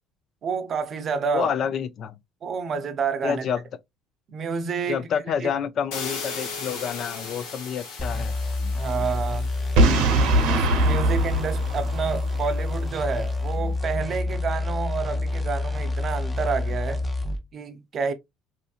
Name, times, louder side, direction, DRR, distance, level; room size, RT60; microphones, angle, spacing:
voice 1, 0.4-1.5 2.4-3.5 4.3-5.1 5.4-5.5 8.7-9.5 10.3-17.1 17.5-18.1, right 5 dB, 45° right, 0.6 m, -29 dB
voice 2, 1.3-2.2 3.2-3.6 4.9-8.4, left 7 dB, 55° left, 0.3 m, -28 dB
sound 1, 5.9-12.7, left 5 dB, 85° left, 1.0 m, -39 dB
sound 2, 8.0-17.4, left 2 dB, 15° left, 0.6 m, -28 dB
Boom, 9.8-12.6, right 2 dB, 80° right, 0.8 m, -21 dB
2.8 x 2.7 x 2.4 m
supercardioid pair, 95°, 0 cm